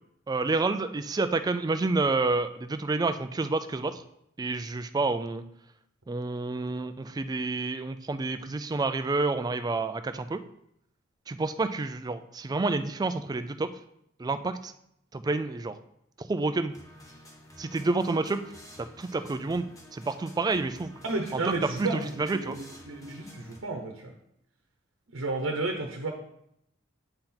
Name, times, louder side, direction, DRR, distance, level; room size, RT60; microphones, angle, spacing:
voice 1, 0.3-4.0 4.4-5.4 6.1-10.4 11.3-13.7 14.2-14.7 15.1-15.8 16.2-16.7 17.6-18.4 18.8-19.7 19.9-20.9 21.3-22.6, right 3 dB, 20° right, 10 dB, 0.3 m, -29 dB
sound 1, 16.7-23.6, left 1 dB, 15° left, 1.1 m, -50 dB
voice 2, 21.0-24.1 25.1-26.1, right 3 dB, 85° right, 2 dB, 0.9 m, -32 dB
8.8 x 4.3 x 3.9 m, 0.75 s
head